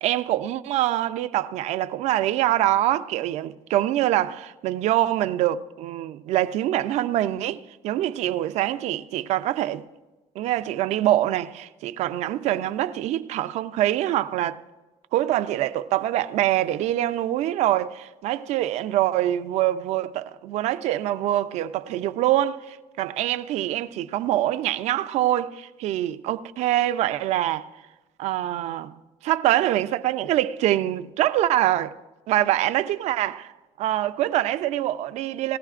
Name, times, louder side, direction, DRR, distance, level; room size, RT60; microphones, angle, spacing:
voice 1, 0.0-9.8 10.4-14.6 15.1-27.7 28.2-28.9 29.2-31.9 32.3-33.5 33.8-35.6, right 13 dB, 75° right, 0.5 m, -24 dB
19.5 x 14.5 x 2.5 m
cardioid pair, 115°, 12 cm